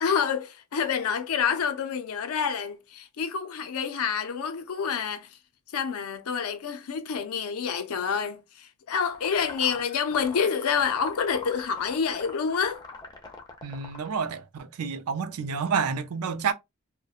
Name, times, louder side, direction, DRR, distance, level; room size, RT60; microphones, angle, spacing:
voice 1, 0.0-5.4 5.7-12.8, left 6 dB, 80° left, 0.5 m, -28 dB
sound 1, 9.1-14.3, left 3 dB, 20° left, 0.4 m, -43 dB
voice 2, 13.6-16.5, right 6 dB, 85° right, 0.4 m, -29 dB
2.3 x 2.1 x 2.7 m
head